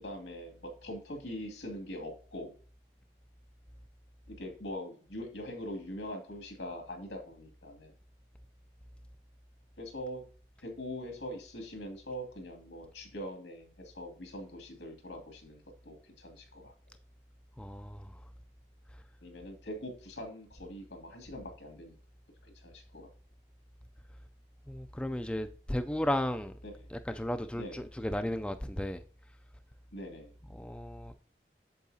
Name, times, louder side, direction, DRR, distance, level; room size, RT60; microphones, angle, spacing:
voice 1, 0.0-2.5 4.3-7.9 9.8-10.2 10.6-16.7 19.2-21.9 22.4-23.1 26.6-26.9 27.6-27.8 29.9-30.3, equal, 90° left, 2.4 m, -43 dB
voice 2, 17.6-18.1 24.7-26.5 26.9-29.0 30.5-31.1, left 1 dB, 5° left, 0.3 m, -34 dB
8.4 x 7.1 x 2.7 m
head